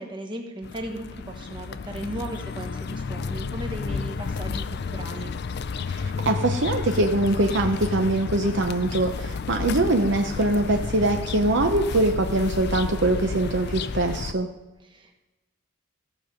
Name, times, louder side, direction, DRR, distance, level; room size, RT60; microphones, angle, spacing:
voice 1, 0.0-5.3 14.9-15.1, right 1 dB, 20° right, 2 dB, 1.2 m, -36 dB
sound 1, 0.6-14.3, left 5 dB, 50° left, 0.4 m, -31 dB
voice 2, 5.9-14.5, right 2 dB, 55° right, 4 dB, 0.7 m, -23 dB
15.0 x 5.3 x 6.5 m, 1.1 s
head